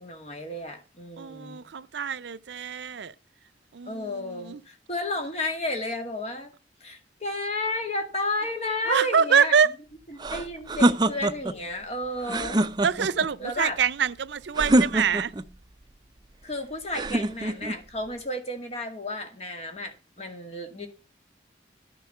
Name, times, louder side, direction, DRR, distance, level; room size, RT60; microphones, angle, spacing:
voice 1, 0.0-1.7 3.9-6.5 6.8-9.5 10.1-12.6 13.4-13.8 16.4-20.9, left 1 dB, 35° left, 2.1 m, -32 dB
voice 2, 1.2-3.1 3.7-4.6 8.9-9.7 12.8-15.3, right 7 dB, 75° right, 0.5 m, -25 dB
sound 1, 10.2-11.6 12.2-13.3 14.6-15.5 16.9-17.8, right 1 dB, 25° right, 0.5 m, -24 dB
11.0 x 6.8 x 5.6 m
head